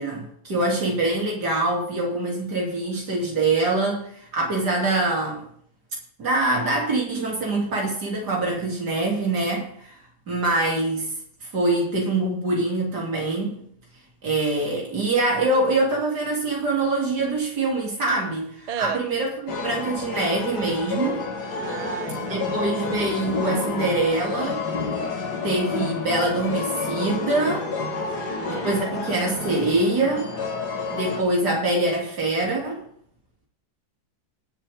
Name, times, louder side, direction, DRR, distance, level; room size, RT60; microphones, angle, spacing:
voice 1, 0.0-5.5 6.2-10.0 10.3-11.1 11.4-13.6 14.2-21.3 22.3-24.6 25.4-27.7 28.5-30.3 30.9-32.8, right 2 dB, 90° right, -2 dB, 3.8 m, -24 dB
voice 2, 18.7-19.0 21.6-22.4 27.9-28.7, right 8 dB, 45° right, 12 dB, 0.5 m, -34 dB
sound 1, 19.5-31.2, left 4 dB, 85° left, 2.3 m, -29 dB
21.0 x 7.2 x 3.7 m, 0.65 s
omnidirectional pair, 1.7 m